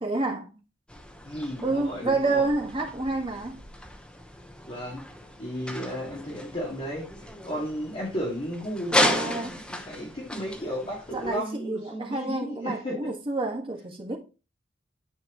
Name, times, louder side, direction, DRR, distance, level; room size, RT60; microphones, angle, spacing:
voice 1, 0.0-0.5 1.6-3.6 8.9-9.6 11.1-14.2, right 3 dB, 30° right, 1.6 m, -29 dB
sound 1, 0.9-11.4, left 1 dB, 5° left, 0.9 m, -34 dB
voice 2, 1.2-2.4 4.7-5.0 5.4-7.1 7.4-13.1, equal, 30° left, 2.1 m, -34 dB
9.5 x 4.6 x 3.0 m
head